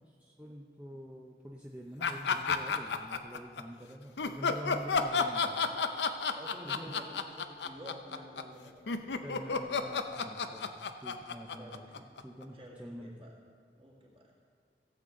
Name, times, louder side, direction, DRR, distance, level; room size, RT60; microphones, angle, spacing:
voice 1, 0.1-5.7 6.6-6.9 9.2-13.3, equal, 10° right, -2 dB, 0.6 m, -46 dB
sound 1, 2.0-3.6 4.2-12.4, left 5 dB, 80° left, 0.6 m, -31 dB
voice 2, 6.3-9.7 11.6-11.8 12.5-13.4 13.8-14.3, right 1 dB, 30° right, -2 dB, 1.9 m, -50 dB
16.5 x 8.1 x 3.8 m, 2.1 s
head